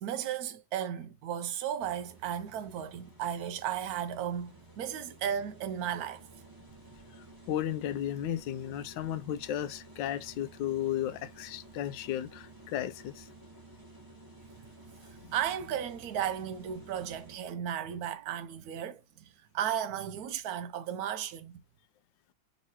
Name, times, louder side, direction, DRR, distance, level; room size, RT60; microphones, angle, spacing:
voice 1, 0.0-6.3 15.3-21.6, right 9 dB, 75° right, 0.8 m, -35 dB
sound 1, 1.8-17.4, right 2 dB, 10° right, 1.2 m, -53 dB
voice 2, 7.5-13.3 15.2-15.3, left 11 dB, 75° left, 1.2 m, -34 dB
5.5 x 3.0 x 2.9 m
omnidirectional pair, 2.1 m